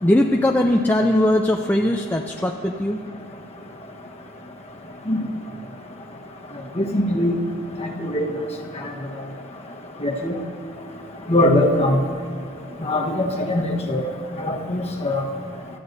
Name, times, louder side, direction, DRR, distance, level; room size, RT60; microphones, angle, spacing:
voice 1, 0.0-3.0, left 1 dB, 10° left, 2 dB, 0.4 m, -20 dB
voice 2, 6.8-7.4 7.8-8.3 10.0-10.4 11.3-12.0 12.8-14.1 14.4-15.2, left 1 dB, 30° left, 0 dB, 1.2 m, -21 dB
25.0 x 13.0 x 2.7 m, 2.4 s
head